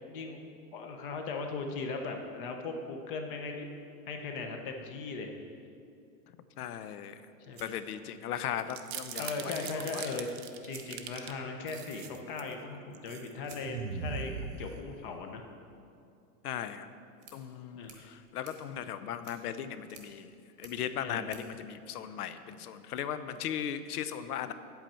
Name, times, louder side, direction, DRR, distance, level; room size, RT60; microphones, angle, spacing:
voice 1, 0.1-3.7 4.1-5.3 7.4-7.8 9.2-10.3 10.6-15.4 17.7-17.9 21.0-21.3, left 4 dB, 35° left, 4 dB, 0.7 m, -38 dB
voice 2, 6.6-7.2 7.6-10.0 16.4-16.9 17.3-20.3 20.6-24.5, left 9 dB, 70° left, 12 dB, 0.7 m, -37 dB
sound 1, 7.5-8.7 10.0-10.1 10.6-11.6 13.4-22.6, right 5 dB, 20° right, 1.0 m, -59 dB
sound 2, 8.6-11.3 11.7-12.5 12.9-13.3 13.6-15.2, right 6 dB, 40° right, 0.5 m, -40 dB
8.8 x 8.0 x 4.3 m, 2.5 s
supercardioid pair, 160°, 48 cm